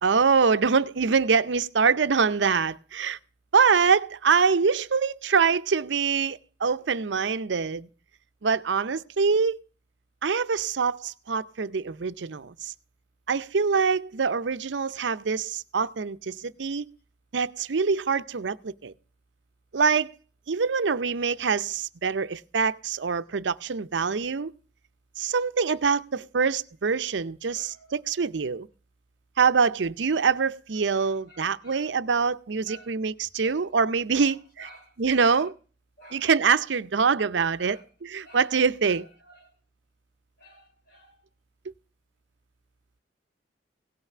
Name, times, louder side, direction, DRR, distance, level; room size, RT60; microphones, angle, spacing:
voice 1, 0.0-3.2 3.5-7.9 8.4-9.6 10.2-12.7 13.3-16.9 17.3-18.9 19.7-20.1 20.5-24.5 25.2-28.7 29.4-34.7 35.0-35.5 36.1-39.1, right 5 dB, 75° right, 0.6 m, -24 dB
voice 2, 27.4-27.9 31.0-31.9 32.7-32.9 33.4-33.6 34.1-34.3 34.6-34.9 35.2-35.5 36.0-36.3 37.6-37.8 38.2-38.5 38.9-39.5 40.4-41.1, equal, 55° left, 3.4 m, -51 dB
17.0 x 5.8 x 6.6 m
head